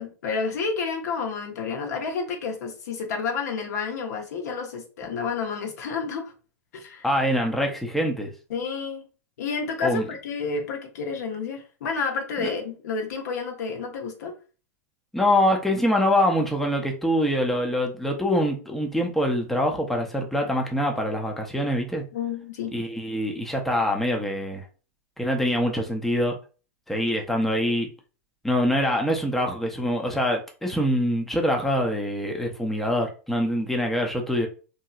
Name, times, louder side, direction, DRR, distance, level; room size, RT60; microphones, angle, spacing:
voice 1, 0.0-6.3 6.7-7.1 8.5-9.1 9.4-14.3 22.1-22.7, left 5 dB, 70° left, 0.8 m, -30 dB
voice 2, 7.0-8.3 9.8-10.1 12.4-12.5 15.1-22.0 22.7-24.7 25.2-26.3 26.9-27.9 28.4-34.5, equal, ahead, 0.6 m, -24 dB
2.9 x 2.8 x 2.4 m
hypercardioid pair, 115°, 9 cm